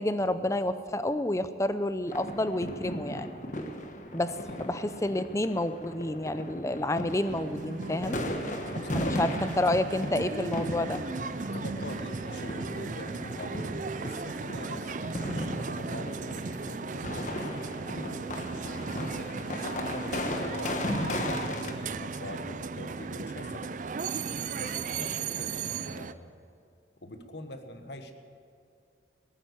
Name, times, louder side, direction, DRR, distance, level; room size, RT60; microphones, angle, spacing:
voice 1, 0.0-3.3 4.1-4.3 4.6-8.2 8.9-11.0, left 1 dB, 15° left, 12 dB, 0.5 m, -29 dB
sound 1, 2.1-21.7, left 1 dB, 40° left, 1.2 m, -37 dB
voice 2, 4.2-4.6 8.8-9.8 11.5-18.2 19.0-24.0 24.6-26.3 27.0-28.1, left 1 dB, 65° left, 7 dB, 1.3 m, -44 dB
sound 2, 7.1-26.1, right 4 dB, 40° right, 0.4 m, -36 dB
19.0 x 8.9 x 8.1 m, 2.4 s
head